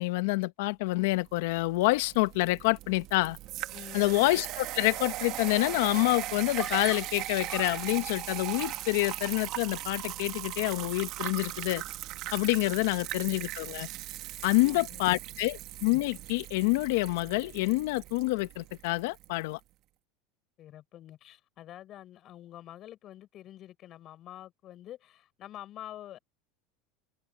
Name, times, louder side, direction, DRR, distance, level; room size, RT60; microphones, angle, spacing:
voice 1, 0.0-3.4 3.9-11.8 12.3-13.9 14.4-19.6, left 22 dB, 75° left, 1.0 m, -27 dB
sound 1, 1.3-19.3, right 16 dB, 55° right, 1.8 m, -39 dB
voice 2, 3.7-4.1 14.4-15.4 20.6-26.2, left 12 dB, 45° left, 7.0 m, -47 dB
Screaming, 6.6-8.0 8.5-9.2 9.5-9.9, right 1 dB, 5° right, 2.4 m, -45 dB
supercardioid pair, 115°, 0 cm